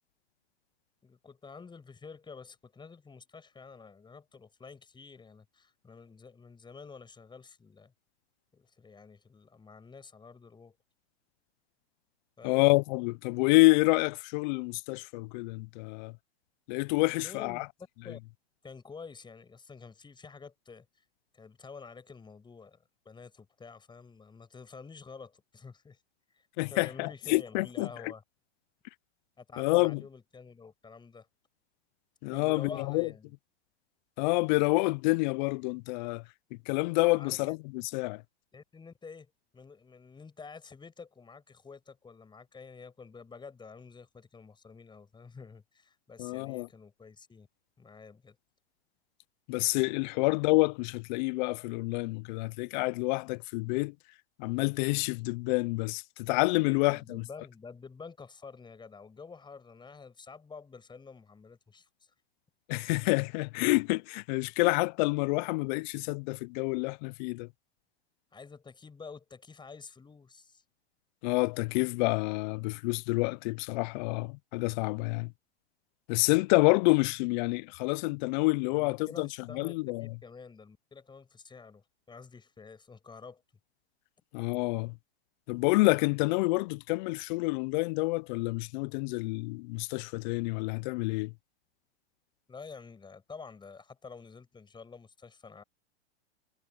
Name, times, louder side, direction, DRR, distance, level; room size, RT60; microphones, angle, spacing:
voice 1, 1.0-7.9 8.5-10.7 12.4-12.7 17.2-17.7 18.0-18.2 18.6-20.9 21.3-26.0 26.3-26.5 26.7-28.2 29.4-31.3 32.3-33.3 37.1-37.5 38.5-47.5 47.8-48.4 50.1-50.2 56.7-61.9 68.3-70.6 78.7-83.4 92.5-95.6, left 5 dB, 15° left, 6.3 m, -49 dB
voice 2, 12.4-16.1 16.7-17.7 26.6-28.1 29.6-30.0 32.2-33.1 34.2-36.2 36.7-38.2 46.2-46.7 49.5-53.9 54.4-57.2 62.7-67.5 71.2-75.3 76.1-80.1 84.3-85.0 85.5-91.3, left 25 dB, 45° left, 0.5 m, -28 dB
hypercardioid pair, 120°, 33 cm